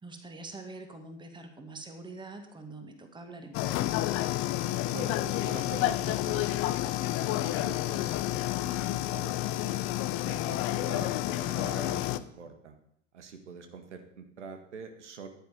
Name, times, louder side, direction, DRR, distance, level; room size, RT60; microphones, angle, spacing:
voice 1, 0.0-4.1, right 3 dB, 10° right, 6 dB, 2.2 m, -45 dB
sound 1, 3.5-12.2, left 15 dB, 35° left, 0.8 m, -30 dB
voice 2, 4.9-9.9 10.2-12.8 13.1-15.3, right 5 dB, 65° right, 7 dB, 1.9 m, -44 dB
14.5 x 10.5 x 5.2 m, 0.72 s
figure-of-eight pair, 85°, 37 cm